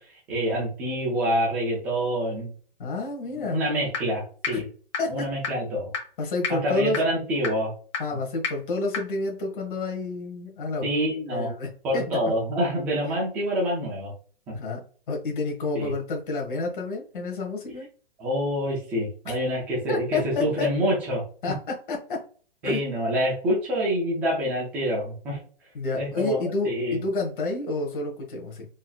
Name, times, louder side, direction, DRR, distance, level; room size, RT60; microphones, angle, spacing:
voice 1, 0.3-2.5 3.3-4.7 5.1-5.9 6.5-7.7 10.8-11.5 11.8-14.1 14.5-14.6 15.7-15.9 18.2-21.2 22.6-25.4 25.9-26.4 26.6-27.0, equal, 5° right, -3 dB, 0.3 m, -26 dB
voice 2, 2.8-3.6 4.5-4.6 5.0-5.3 6.2-7.0 8.0-10.9 11.3-12.2 14.5-17.9 19.3-19.4 19.9-20.7 21.4-21.5 21.9-22.2 22.6-22.8 25.7-28.6, left 2 dB, 60° left, 0 dB, 1.3 m, -29 dB
sound 1, 3.9-4.0 4.4-4.5 4.9-5.0 5.4-5.5 5.9-6.0 6.4-6.5 6.9-7.0 7.4-7.5 7.9-8.0 8.4-8.5 8.9-9.0, left 6 dB, 35° left, 1.0 m, -27 dB
4.0 x 2.7 x 2.3 m, 0.42 s
hypercardioid pair, 155°, 29 cm